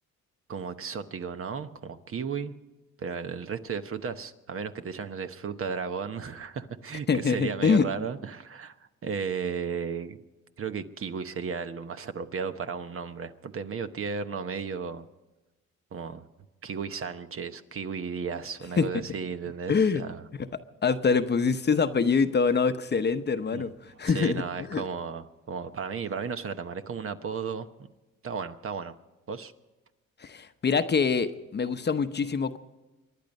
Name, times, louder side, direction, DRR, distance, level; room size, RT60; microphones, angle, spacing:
voice 1, 0.5-2.5 3.0-8.8 9.0-10.2 10.6-15.1 15.9-16.3 16.6-20.3 23.5-23.7 24.0-27.9 28.2-29.0 29.3-29.5, right 6 dB, 45° right, 9 dB, 1.0 m, -34 dB
voice 2, 7.1-7.9 18.8-19.0 19.7-20.0 20.8-24.8 30.2-32.6, left 5 dB, 35° left, 10 dB, 0.9 m, -25 dB
24.5 x 11.0 x 5.4 m, 1.1 s
cardioid pair, 90°, 30 cm